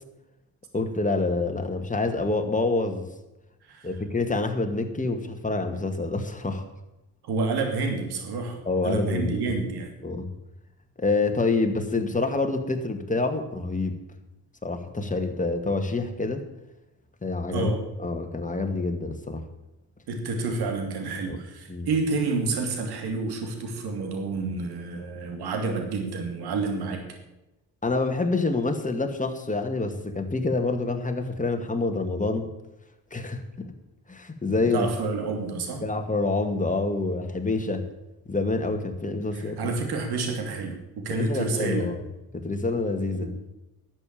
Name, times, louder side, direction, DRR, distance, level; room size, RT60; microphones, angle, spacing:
voice 1, 0.7-3.1 3.8-6.6 8.7-9.4 10.0-10.3 11.0-14.0 14.6-16.4 17.2-17.7 18.0-19.4 21.3-21.4 21.7-21.9 27.8-32.5 33.1-33.7 34.1-34.9 35.3-35.5 35.8-37.9 38.3-39.7 41.1-42.0 42.3-43.3, left 3 dB, 20° left, 5 dB, 2.3 m, -27 dB
voice 2, 7.2-9.9 17.5-17.8 20.1-27.0 34.5-35.8 39.3-41.9 43.1-43.3, right 3 dB, 85° right, 4 dB, 2.8 m, -29 dB
11.5 x 7.9 x 8.7 m, 0.96 s
cardioid pair, 65°, 38 cm